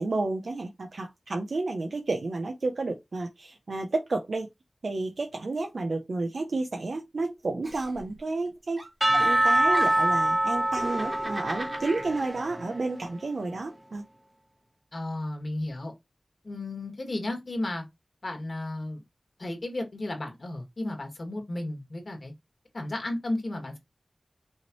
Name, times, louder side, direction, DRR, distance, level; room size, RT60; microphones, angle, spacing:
voice 1, 0.0-4.5 4.8-8.8 9.2-14.0, right 3 dB, 80° right, 0.6 m, -31 dB
Giggle, 7.6-8.5 8.8-10.2 10.8-12.1, right 2 dB, 60° right, 2.7 m, -39 dB
Percussion / Church bell, 9.0-13.1, right 1 dB, 20° right, 1.1 m, -25 dB
voice 2, 14.9-15.9 16.4-17.8 18.2-19.0 19.4-22.3 22.7-23.8, left 1 dB, 65° left, 2.0 m, -33 dB
5.5 x 3.2 x 3.0 m
wide cardioid pair, 50°, 0 cm